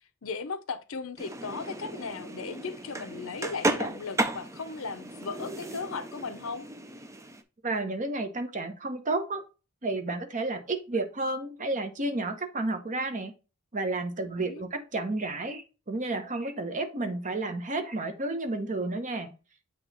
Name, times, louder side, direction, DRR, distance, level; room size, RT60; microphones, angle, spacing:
voice 1, 0.2-6.7 14.3-14.7, left 4 dB, 65° left, 0.7 m, -37 dB
sound 1, 1.2-7.4, right 2 dB, 15° right, 0.5 m, -34 dB
voice 2, 7.6-9.4 9.8-13.3 13.7-19.3, right 2 dB, 35° right, 0.9 m, -31 dB
7.8 x 3.0 x 4.0 m
head